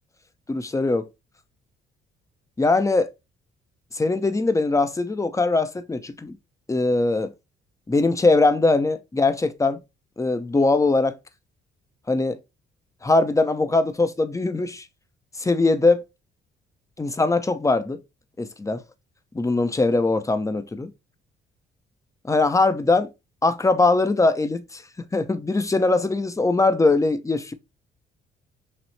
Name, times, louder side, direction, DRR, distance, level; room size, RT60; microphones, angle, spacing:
voice 1, 0.5-1.1 2.6-3.1 3.9-6.4 6.7-7.3 7.9-9.8 10.2-11.2 12.1-12.4 13.0-14.8 15.4-16.0 17.0-18.0 18.4-18.8 19.3-20.9 22.3-23.1 23.4-24.8 25.1-27.5, left 3 dB, 15° left, 0.6 m, -21 dB
6.0 x 2.0 x 3.2 m
cardioid pair, 90°, 20 cm